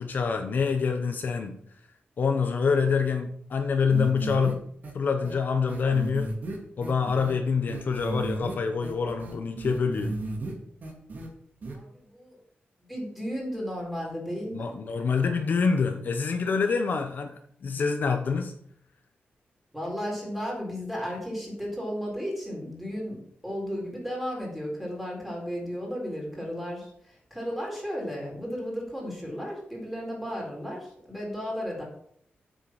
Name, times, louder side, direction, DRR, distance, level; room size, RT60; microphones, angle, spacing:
voice 1, 0.0-1.6 2.2-4.6 4.9-6.3 6.8-10.2 14.5-18.5, left 5 dB, 55° left, 5 dB, 0.9 m, -26 dB
sound 1, 3.9-4.5 4.8-4.9 5.2-5.3 5.7-7.3 7.7-8.5 8.8-10.5 10.8-11.3 11.6-11.7, right 2 dB, 50° right, 2.5 m, -34 dB
voice 2, 11.7-12.4 12.8-14.7 19.7-31.8, equal, 5° right, -2 dB, 4.2 m, -34 dB
8.0 x 6.7 x 7.5 m, 0.67 s
wide cardioid pair, 170°, 4 cm